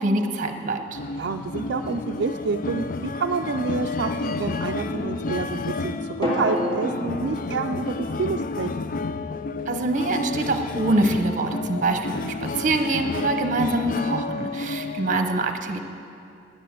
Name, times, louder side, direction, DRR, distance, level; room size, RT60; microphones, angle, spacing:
voice 1, 0.0-1.0 9.7-15.8, right 2 dB, 45° right, 6 dB, 0.9 m, -25 dB
sound 1, 0.9-15.2, left 3 dB, 45° left, 0.4 m, -31 dB
voice 2, 1.2-8.7 14.8-15.0, right 4 dB, 70° right, 4 dB, 0.4 m, -28 dB
sound 2, 6.2-10.2 10.4-10.5, equal, 25° left, 2.2 m, -32 dB
11.0 x 10.0 x 7.6 m, 2.5 s
head